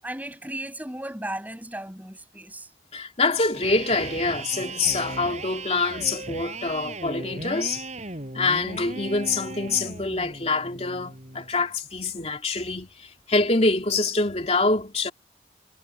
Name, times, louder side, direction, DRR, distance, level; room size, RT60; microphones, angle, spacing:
voice 1, 0.0-2.7, right 1 dB, 10° right, 7.5 m, -35 dB
voice 2, 2.9-7.9 8.3-15.1, left 3 dB, 35° left, 2.8 m, -25 dB
Electric guitar, 3.4-11.5, right 2 dB, 40° right, 6.3 m, -37 dB
head